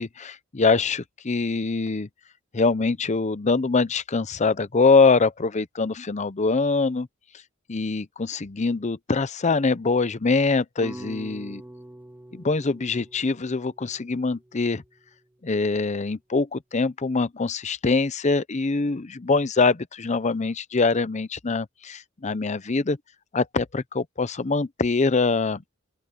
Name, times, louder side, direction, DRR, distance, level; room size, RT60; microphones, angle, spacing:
voice 1, 0.0-2.1 2.5-7.1 7.7-11.6 12.3-14.8 15.4-23.0 23.3-25.6, left 4 dB, 35° left, 0.7 m, -23 dB
sound 1, 10.8-15.1, right 1 dB, 10° right, 0.8 m, -44 dB
open air
head